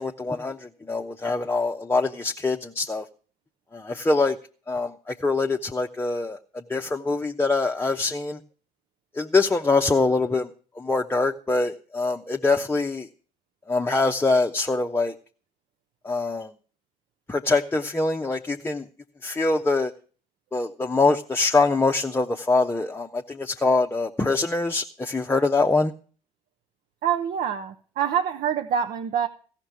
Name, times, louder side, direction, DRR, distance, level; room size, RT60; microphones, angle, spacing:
voice 1, 0.0-3.1 3.7-4.4 4.7-8.4 9.1-10.5 10.8-13.1 13.7-15.1 16.0-16.5 17.3-18.9 19.2-19.9 20.5-25.9, left 3 dB, 10° left, 3 dB, 0.9 m, -24 dB
voice 2, 27.0-29.3, right 8 dB, 45° right, 6 dB, 0.9 m, -25 dB
16.0 x 5.9 x 9.0 m, 0.39 s
figure-of-eight pair, 55°, 19 cm